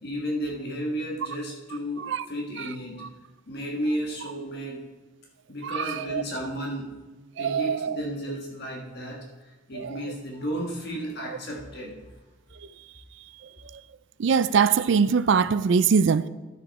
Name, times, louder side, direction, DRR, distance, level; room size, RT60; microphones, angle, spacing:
voice 1, 0.0-3.1 3.5-4.8 5.5-6.9 7.4-11.9, equal, 50° left, 1.5 m, -33 dB
voice 2, 5.6-6.2 7.4-8.0 9.7-10.0 11.3-11.4 12.5-12.7 13.6-13.8 14.2-16.3, right 6 dB, 60° right, 0.4 m, -23 dB
11.5 x 7.0 x 4.1 m
head